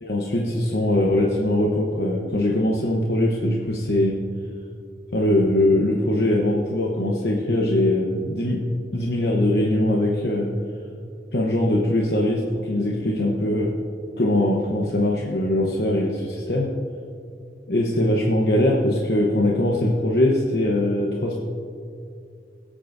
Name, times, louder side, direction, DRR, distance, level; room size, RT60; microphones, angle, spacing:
voice 1, 0.0-4.2 5.1-8.6 8.9-10.5 11.3-13.7 14.2-16.7 17.7-21.4, left 1 dB, 60° left, -2 dB, 1.0 m, -21 dB
21.0 x 8.7 x 2.6 m, 2.4 s
head